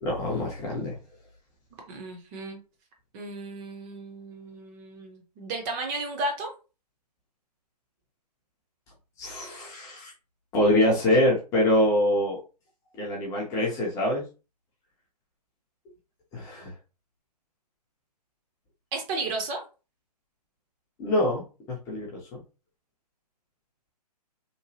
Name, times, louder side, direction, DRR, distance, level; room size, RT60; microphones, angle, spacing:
voice 1, 0.0-1.0 9.2-10.1 10.5-12.4 13.0-14.2 16.3-16.7 21.0-22.4, left 1 dB, 15° left, -3 dB, 0.5 m, -25 dB
voice 2, 1.9-2.6 3.1-6.5 18.9-19.6, right 2 dB, 25° right, 2 dB, 0.6 m, -33 dB
3.0 x 2.1 x 2.7 m, 0.32 s
hypercardioid pair, 140°, 21 cm